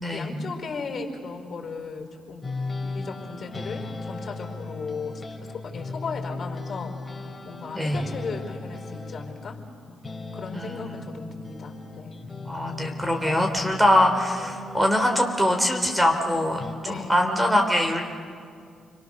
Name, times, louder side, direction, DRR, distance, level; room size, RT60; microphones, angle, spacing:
voice 1, 0.0-5.2 5.5-7.2 7.4-9.6 9.9-10.0 10.3-12.2 16.8-17.4, left 4 dB, 50° left, 3 dB, 4.9 m, -36 dB
sound 1, 2.4-9.7 10.0-15.5 16.6-16.7, left 3 dB, 25° left, 4.1 m, -37 dB
voice 2, 7.7-8.1 10.5-11.0 12.4-16.6 16.9-18.0, left 1 dB, 10° right, 3 dB, 3.8 m, -23 dB
30.0 x 22.5 x 6.7 m, 2.2 s
supercardioid pair, 70°, 0 cm